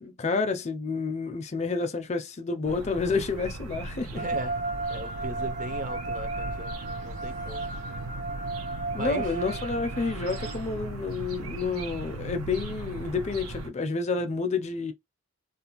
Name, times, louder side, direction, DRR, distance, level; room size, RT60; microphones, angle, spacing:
voice 1, 0.0-4.2 8.9-14.9, left 4 dB, 30° left, 0.4 m, -29 dB
sound 1, 2.6-13.7, right 2 dB, 85° right, 0.6 m, -38 dB
voice 2, 4.1-4.6 4.9-7.7 8.9-9.4, right 2 dB, 35° right, 0.5 m, -38 dB
sound 2, 4.2-10.5, right 2 dB, 60° right, 1.3 m, -34 dB
2.5 x 2.1 x 2.9 m
head